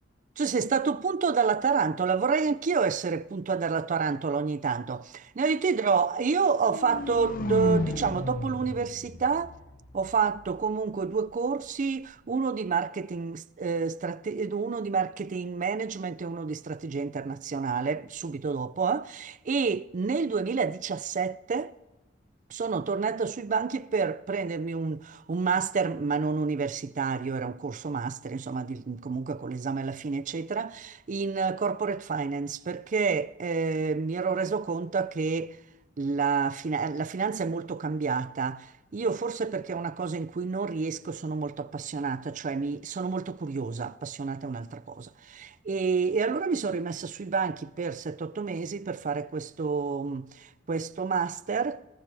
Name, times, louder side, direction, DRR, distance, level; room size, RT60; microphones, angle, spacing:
voice 1, 0.4-5.0 5.4-9.5 9.9-21.7 22.5-35.6 36.0-51.8, right 5 dB, 40° right, 0.4 m, -29 dB
sound 1, 6.5-10.5, left 1 dB, 45° left, 0.9 m, -33 dB
20.5 x 17.5 x 3.4 m
head